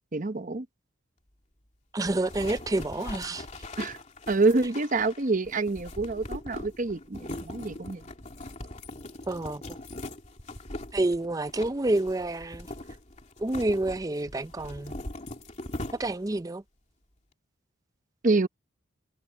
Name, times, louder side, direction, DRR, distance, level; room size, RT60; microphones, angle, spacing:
voice 1, 0.1-0.7 3.8-4.0 4.3-8.0 18.2-18.5, right 3 dB, 40° right, 0.8 m, -27 dB
voice 2, 1.9-3.5 9.3-9.6 10.9-12.7 13.4-14.9 15.9-16.6, right 2 dB, 15° right, 0.5 m, -28 dB
sound 1, 2.1-16.4, left 1 dB, 35° left, 2.9 m, -41 dB
head